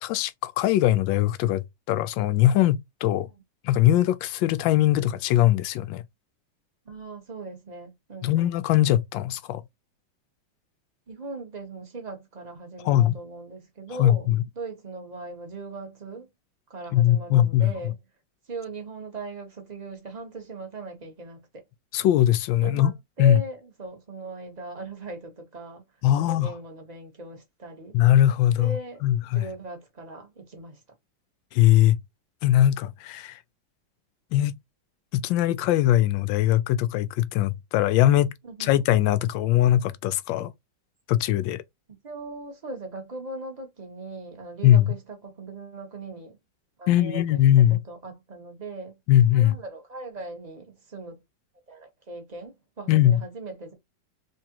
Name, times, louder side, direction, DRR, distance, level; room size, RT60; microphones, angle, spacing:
voice 1, 0.0-3.3 3.6-6.0 8.2-9.6 12.8-13.2 14.0-14.4 16.9-17.7 21.9-22.9 23.2-23.4 26.0-26.5 27.9-28.8 29.0-29.4 31.5-32.0 32.4-33.4 34.3-34.5 35.1-38.3 38.6-40.5 41.1-41.6 44.6-44.9 46.9-47.8 49.1-49.6 52.9-53.2, left 12 dB, 85° left, 1.3 m, -21 dB
voice 2, 6.8-8.5 11.1-14.3 14.6-16.3 16.7-17.9 18.5-21.6 22.6-25.8 26.3-28.0 28.6-29.0 29.3-30.8 38.4-38.7 42.0-46.4 46.8-47.4 47.9-49.0 49.3-51.2 51.7-53.7, right 3 dB, 25° right, 1.0 m, -39 dB
3.7 x 3.5 x 2.9 m
omnidirectional pair, 2.0 m